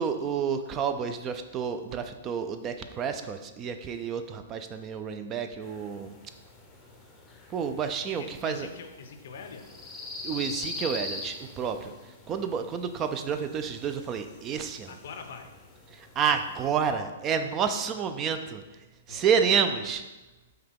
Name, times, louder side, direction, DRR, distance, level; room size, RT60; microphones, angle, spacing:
voice 1, 0.0-6.2 7.5-8.7 10.2-11.9 12.3-15.0 15.9-18.6 19.1-20.0, right 6 dB, 25° right, 8 dB, 0.3 m, -29 dB
sound 1, 5.6-16.9, left 3 dB, 20° left, 0.6 m, -43 dB
voice 2, 8.2-9.6 14.9-15.5 19.1-19.2, left 5 dB, 65° left, 7 dB, 0.5 m, -43 dB
5.6 x 2.2 x 3.5 m, 1.1 s
hypercardioid pair, 130°, 0 cm